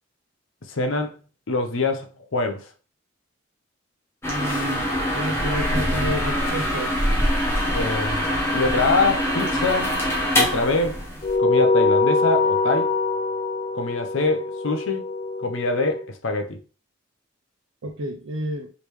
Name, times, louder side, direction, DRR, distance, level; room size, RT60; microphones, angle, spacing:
voice 1, 0.7-1.2 1.5-2.7 7.7-9.9 10.3-11.0 11.4-12.9 13.7-15.1 15.4-16.6, left 3 dB, 75° left, 0.8 m, -24 dB
sound 1, 4.2-11.4, equal, 10° left, 0.9 m, -24 dB
voice 2, 4.3-7.0 17.8-18.7, right 1 dB, 85° right, 0.6 m, -30 dB
sound 2, 11.2-16.0, left 3 dB, 35° left, 0.3 m, -23 dB
4.9 x 3.3 x 3.2 m
head